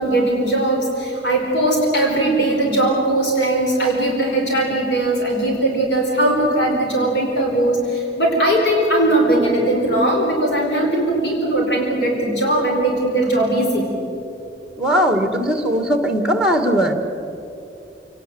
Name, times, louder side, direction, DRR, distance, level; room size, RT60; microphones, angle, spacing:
voice 1, 0.0-13.9, right 1 dB, 75° left, 0 dB, 4.6 m, -19 dB
voice 2, 14.8-16.9, equal, 5° right, 6 dB, 2.0 m, -18 dB
28.0 x 18.5 x 7.9 m, 2.8 s
head